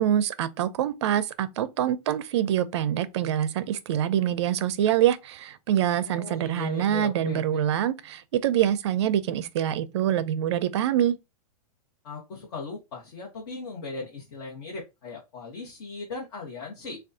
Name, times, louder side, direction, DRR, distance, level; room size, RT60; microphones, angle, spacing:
voice 1, 0.0-11.2, right 11 dB, 45° right, 0.5 m, -25 dB
voice 2, 6.0-7.6 12.0-17.0, left 4 dB, 45° left, 1.1 m, -38 dB
6.0 x 2.3 x 2.7 m
hypercardioid pair, 165°, 20 cm